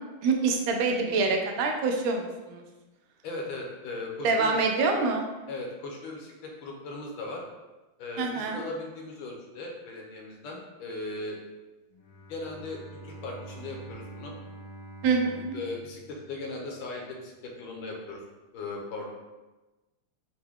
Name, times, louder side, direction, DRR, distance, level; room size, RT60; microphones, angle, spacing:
voice 1, 0.2-2.6 4.2-5.2 8.2-8.6 15.0-15.6, right 4 dB, 80° right, 3 dB, 1.3 m, -26 dB
voice 2, 3.2-4.5 5.5-7.4 8.0-11.4 12.3-14.3 15.5-18.2 18.5-19.1, left 2 dB, 75° left, 0 dB, 1.5 m, -38 dB
Bowed string instrument, 11.9-16.9, right 2 dB, 90° left, 0.8 m, -46 dB
5.9 x 2.1 x 3.5 m, 1.1 s
omnidirectional pair, 2.3 m